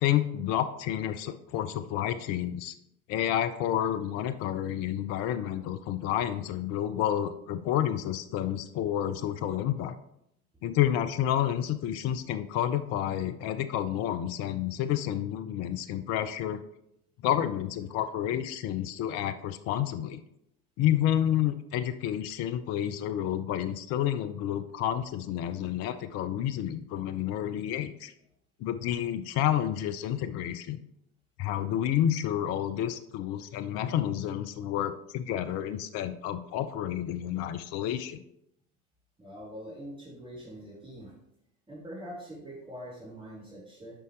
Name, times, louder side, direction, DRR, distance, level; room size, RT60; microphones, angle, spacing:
voice 1, 0.0-2.7 3.1-9.9 10.6-16.6 17.2-20.2 20.8-28.1 28.6-30.8 31.4-38.2, left 11 dB, 35° left, 11 dB, 0.5 m, -30 dB
voice 2, 39.2-41.1 41.7-44.0, equal, 10° right, -6 dB, 2.8 m, -43 dB
8.7 x 5.4 x 3.2 m, 0.78 s
figure-of-eight pair, 75°, 45 cm